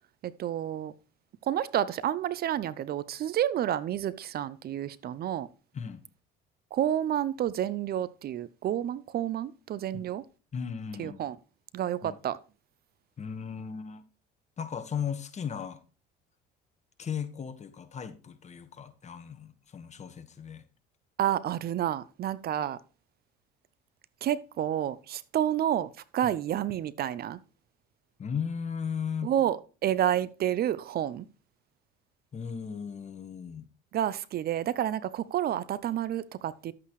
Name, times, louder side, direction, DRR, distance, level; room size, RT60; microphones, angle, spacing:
voice 1, 0.2-0.9 1.5-5.5 6.7-10.2 11.0-11.4 11.7-12.4 21.2-22.8 24.2-27.4 29.2-31.3 33.9-36.7, right 11 dB, 50° right, 0.6 m, -30 dB
voice 2, 10.5-11.2 12.0-12.2 13.2-14.0 14.6-15.8 17.0-20.7 26.2-26.3 28.2-29.3 32.3-33.7, left 7 dB, 35° left, 1.4 m, -36 dB
12.0 x 8.4 x 3.1 m
supercardioid pair, 90°, 20 cm